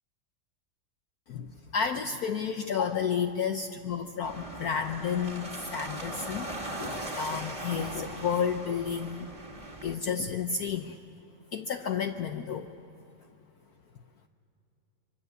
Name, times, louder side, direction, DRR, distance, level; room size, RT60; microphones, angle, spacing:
voice 1, 1.3-6.5 6.8-9.3 9.8-11.0 11.5-12.7, left 7 dB, 60° left, 6 dB, 1.1 m, -31 dB
sound 1, 4.2-9.9, right 1 dB, 15° right, 2.1 m, -39 dB
25.5 x 24.0 x 6.8 m, 2.8 s
omnidirectional pair, 2.0 m